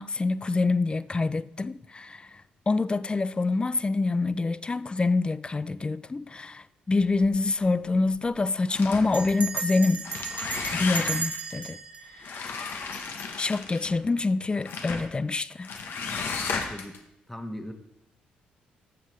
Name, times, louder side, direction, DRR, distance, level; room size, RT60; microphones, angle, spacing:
voice 1, 0.0-2.3 2.7-10.1 10.7-11.8 12.4-12.6 13.4-15.7, left 3 dB, 25° left, 0.4 m, -26 dB
Bell, 7.0-7.4 7.6-7.7 8.0-8.3 9.1-13.2, right 4 dB, 40° right, 1.4 m, -36 dB
sound 1, 8.7-9.3 9.9-11.4 12.2-14.0 14.6-15.1 15.6-17.0, left 5 dB, 60° left, 1.1 m, -34 dB
voice 2, 16.5-16.9 17.3-17.7, left 1 dB, 5° left, 1.3 m, -39 dB
12.5 x 7.1 x 3.2 m
hypercardioid pair, 50°, 4 cm